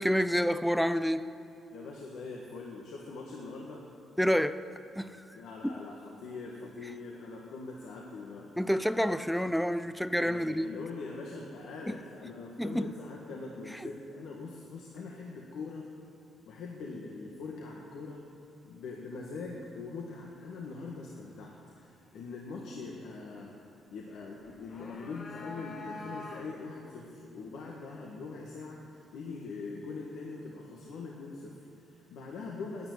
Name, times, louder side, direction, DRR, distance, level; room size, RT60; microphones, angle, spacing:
voice 1, 0.0-1.3 4.2-4.6 5.0-5.4 5.6-5.7 8.6-10.7 11.9-12.0 12.6-12.9 13.8-13.9, equal, ahead, 13 dB, 0.5 m, -28 dB
voice 2, 1.7-3.8 5.3-8.5 10.2-15.9 16.5-18.2 18.6-23.6 23.9-32.9, left 4 dB, 80° left, -1 dB, 1.5 m, -42 dB
sound 1, 24.4-26.8, left 3 dB, 60° left, 2.3 m, -45 dB
11.0 x 9.7 x 9.6 m, 2.7 s
cardioid pair, 80°, 0 cm